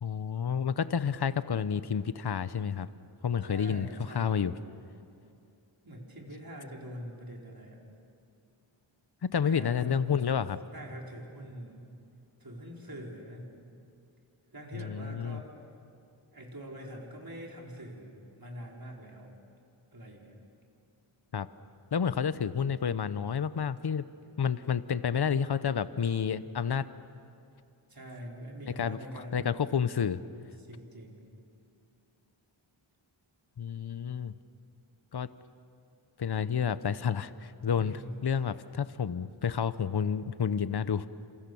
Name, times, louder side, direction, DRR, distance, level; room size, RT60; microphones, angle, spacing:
voice 1, 0.0-2.9 3.2-4.5 9.2-10.6 14.7-15.4 21.3-21.5 21.9-24.0 24.4-26.9 28.8-29.0 29.3-30.2 33.6-34.3 35.1-35.3 36.2-37.9 38.2-41.1, left 7 dB, 50° left, 14 dB, 0.8 m, -30 dB
voice 2, 3.4-4.5 5.8-7.9 9.4-9.9 10.7-11.8 12.4-13.5 14.5-15.5 16.3-18.1 18.4-19.3 19.9-20.3 27.9-29.5 30.6-31.3 37.8-38.4, equal, 45° right, -1 dB, 4.8 m, -44 dB
28.5 x 26.5 x 7.1 m, 2.6 s
wide cardioid pair, 80°, 50 cm